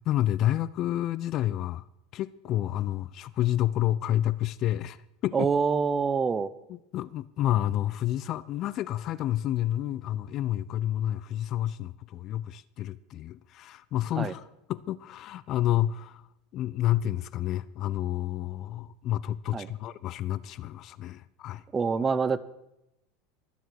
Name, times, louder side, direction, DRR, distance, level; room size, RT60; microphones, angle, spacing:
voice 1, 0.1-1.8 2.1-5.0 5.2-5.5 6.7-14.4 14.7-16.2 16.5-21.6, left 13 dB, 45° left, 0.5 m, -29 dB
voice 2, 5.3-6.5 14.2-14.3 19.5-19.7 21.7-22.4, right 5 dB, 20° right, 0.8 m, -26 dB
24.0 x 9.2 x 4.8 m
supercardioid pair, 125°, 0 cm